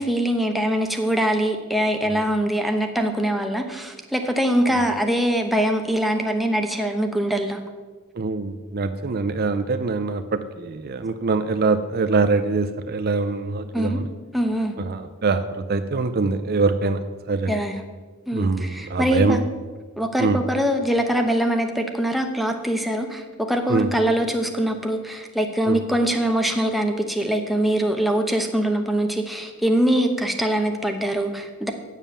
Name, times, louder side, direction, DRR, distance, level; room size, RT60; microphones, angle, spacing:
voice 1, 0.0-7.6 13.7-14.0 14.3-14.7 17.5-17.8 18.3-19.4 20.0-31.7, right 1 dB, ahead, 3 dB, 0.9 m, -23 dB
voice 2, 8.2-14.1 14.8-17.0 17.3-17.6 18.3-19.4 20.2-20.4 23.7-23.9 25.7-25.8, right 3 dB, 45° right, 10 dB, 0.5 m, -24 dB
9.1 x 7.3 x 6.8 m, 1.4 s
head